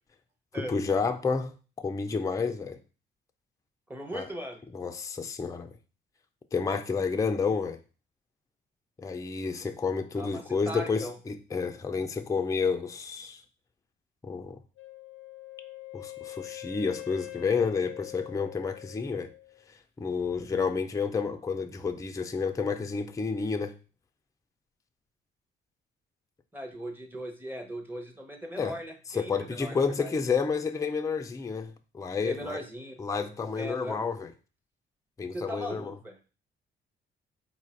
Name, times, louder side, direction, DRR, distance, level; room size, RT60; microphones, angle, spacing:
voice 1, 0.6-2.8 4.1-4.3 4.7-5.7 6.5-7.8 9.0-13.4 14.2-14.6 15.9-19.3 20.0-23.7 28.6-28.8 29.1-32.6 33.0-34.3 35.2-35.9, left 5 dB, 15° left, 0.4 m, -30 dB
voice 2, 3.9-4.6 10.2-11.2 26.5-30.1 32.2-32.9 33.6-34.0 35.3-36.2, equal, 10° right, 0.8 m, -38 dB
Wind instrument woodwind instrument, 14.8-19.6, left 18 dB, 85° left, 0.5 m, -44 dB
4.1 x 2.4 x 4.3 m
cardioid pair, 90°, 20 cm